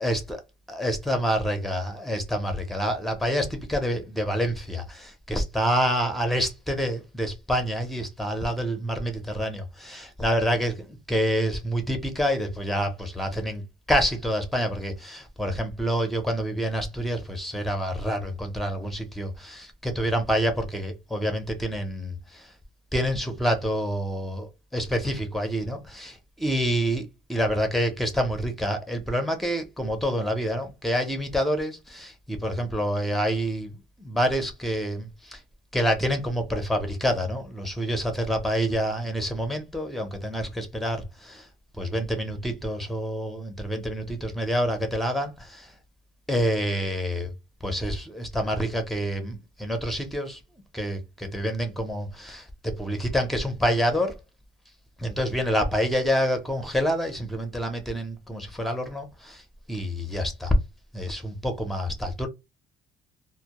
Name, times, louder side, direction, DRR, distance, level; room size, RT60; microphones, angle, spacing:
voice 1, 0.0-0.4 0.7-13.6 13.9-22.5 22.9-35.4 35.7-41.5 41.8-45.7 46.3-47.3 47.6-50.4 50.7-54.2 55.0-59.4 59.7-60.5 60.9-62.3, equal, ahead, 0.6 m, -27 dB
2.1 x 2.0 x 2.8 m
cardioid pair, 110°, 17 cm